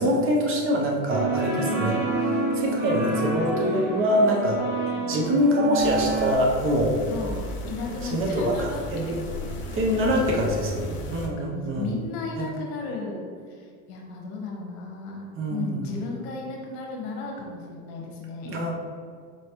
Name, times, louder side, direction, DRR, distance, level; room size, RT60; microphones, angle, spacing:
voice 1, 0.0-2.0 2.5-4.6 5.1-7.0 8.0-9.2 9.7-11.9 12.4-12.5 15.4-15.9 18.4-18.7, equal, 30° right, 0 dB, 0.6 m, -24 dB
sound 1, 1.1-6.3, right 2 dB, 60° right, 1.1 m, -28 dB
voice 2, 1.5-2.0 4.9-5.1 7.1-7.4 7.7-9.1 10.4-10.6 11.1-13.2 13.5-18.7, left 3 dB, 60° left, -1 dB, 1.2 m, -35 dB
sound 2, 5.8-11.3, left 1 dB, 30° left, 0.6 m, -36 dB
4.5 x 3.1 x 2.9 m, 2.1 s
supercardioid pair, 115°, 40 cm